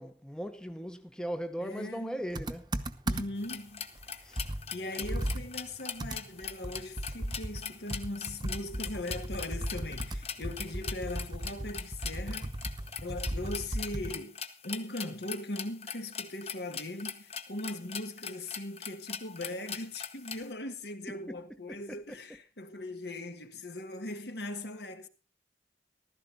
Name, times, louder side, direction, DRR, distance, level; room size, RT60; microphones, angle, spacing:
voice 1, 0.0-2.7 4.2-4.4 21.3-21.4 21.7-22.2, equal, 5° left, 0.8 m, -39 dB
voice 2, 1.6-2.2 3.1-3.9 4.7-12.5 13.0-14.4 14.6-25.1, left 1 dB, 65° left, 1.6 m, -39 dB
Computer keyboard, 2.3-3.5 4.0-4.1 4.4-14.2, right 1 dB, 25° right, 0.9 m, -36 dB
sound 1, 3.4-20.4, left 7 dB, 35° left, 1.1 m, -40 dB
15.0 x 13.0 x 3.9 m
head